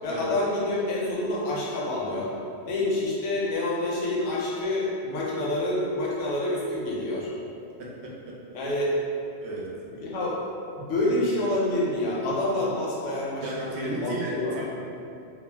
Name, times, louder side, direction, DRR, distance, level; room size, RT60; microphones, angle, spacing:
voice 1, 0.0-2.3 2.6-7.3 8.5-9.0 9.9-10.4 10.8-14.6, left 1 dB, 80° left, -5 dB, 1.0 m, -27 dB
voice 2, 7.8-8.4 9.4-9.7 13.4-14.6, right 1 dB, 70° right, -3 dB, 0.8 m, -35 dB
2.4 x 2.0 x 3.3 m, 2.6 s
omnidirectional pair, 1.2 m